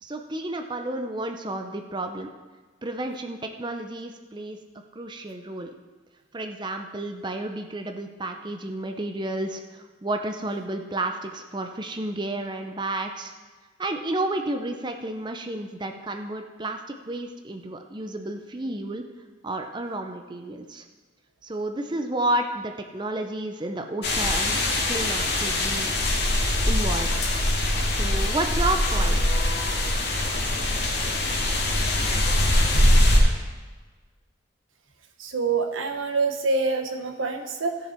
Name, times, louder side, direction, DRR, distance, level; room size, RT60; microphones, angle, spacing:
voice 1, 0.0-2.3 2.8-4.6 4.9-5.7 6.3-13.3 13.8-19.0 19.4-20.8 21.4-24.6 24.9-25.9 26.7-27.1 27.9-29.4, right 2 dB, 25° right, 5 dB, 0.6 m, -31 dB
sound 1, 24.0-33.2, left 1 dB, 55° left, 2.2 m, -22 dB
voice 2, 35.2-37.8, right 4 dB, 85° right, 5 dB, 1.2 m, -26 dB
15.5 x 6.8 x 4.4 m, 1.4 s
head